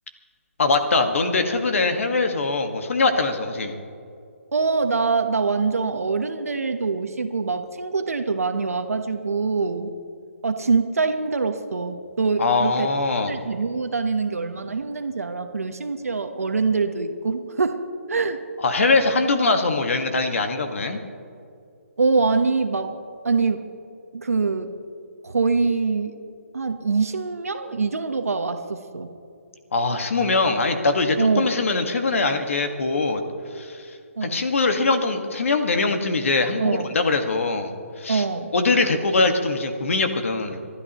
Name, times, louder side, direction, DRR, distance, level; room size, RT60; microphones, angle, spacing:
voice 1, 0.6-3.8 12.4-13.3 18.6-21.0 29.7-33.2 33.5-37.7 38.0-38.2 38.5-40.6, left 3 dB, 65° left, 6 dB, 1.8 m, -22 dB
voice 2, 4.5-9.9 10.4-12.9 13.3-17.8 18.1-18.4 22.0-23.0 23.2-23.6 24.1-24.7 25.2-26.2 26.5-29.1 31.2-31.5 34.2-34.4 36.6-36.9 38.1-38.5, right 4 dB, 85° right, 6 dB, 1.2 m, -24 dB
27.0 x 12.5 x 3.1 m, 2.5 s
hypercardioid pair, 160°, 8 cm